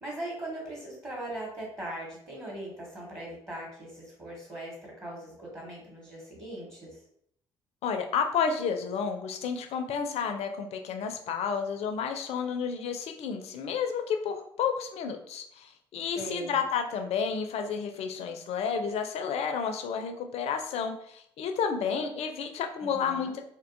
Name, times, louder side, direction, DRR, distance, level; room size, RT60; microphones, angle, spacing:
voice 1, 0.0-7.0 16.2-16.6 22.8-23.3, right 1 dB, 25° right, -4 dB, 1.0 m, -40 dB
voice 2, 7.8-23.4, left 6 dB, 50° left, 5 dB, 0.4 m, -31 dB
2.5 x 2.2 x 2.4 m, 0.71 s
figure-of-eight pair, 45°, 13 cm